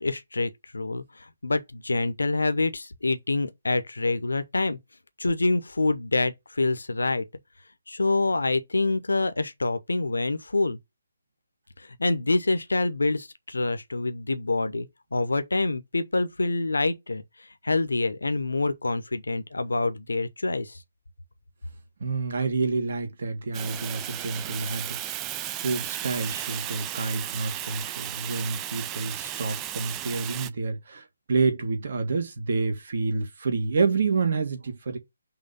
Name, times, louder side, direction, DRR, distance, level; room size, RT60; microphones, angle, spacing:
voice 1, 0.0-4.8 5.2-7.2 7.9-10.8 11.8-17.2 17.6-20.8, left 2 dB, 70° left, 0.9 m, -26 dB
voice 2, 22.0-25.1 25.6-35.0, right 4 dB, 45° right, 1.6 m, -28 dB
Fire, 23.5-30.5, right 12 dB, 15° right, 0.4 m, -34 dB
5.9 x 3.3 x 5.5 m
figure-of-eight pair, 145°, 0 cm